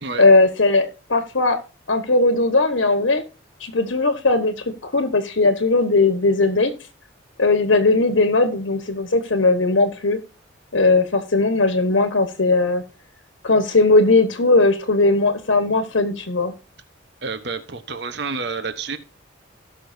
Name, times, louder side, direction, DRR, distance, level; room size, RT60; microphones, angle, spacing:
voice 1, 0.2-1.6 1.9-3.2 3.6-6.7 7.4-10.2 10.7-12.8 13.4-16.5, left 3 dB, 75° left, 8 dB, 1.3 m, -18 dB
voice 2, 17.2-19.0, right 4 dB, 55° right, 11 dB, 1.0 m, -29 dB
18.0 x 6.2 x 2.7 m, 0.33 s
head